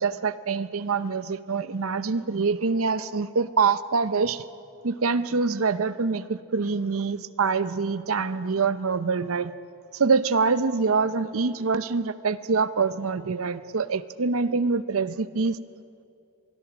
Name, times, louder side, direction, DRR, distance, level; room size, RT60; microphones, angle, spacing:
voice 1, 0.0-4.4 4.8-9.5 9.9-15.6, right 4 dB, 75° right, 14 dB, 0.7 m, -25 dB
24.5 x 20.5 x 6.1 m, 2.5 s
head